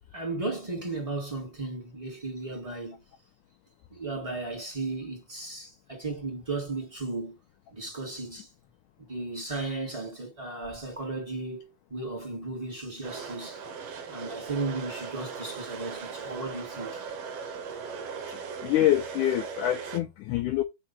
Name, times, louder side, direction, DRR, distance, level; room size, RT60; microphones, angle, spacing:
voice 1, 0.1-3.0 3.9-7.3 7.7-8.5 9.0-13.6 14.1-17.0, right 3 dB, 10° right, 2.1 m, -35 dB
sound 1, 13.0-20.0, right 6 dB, 65° right, 1.6 m, -38 dB
voice 2, 18.3-20.6, left 13 dB, 85° left, 1.8 m, -26 dB
4.8 x 4.8 x 5.8 m
omnidirectional pair, 4.4 m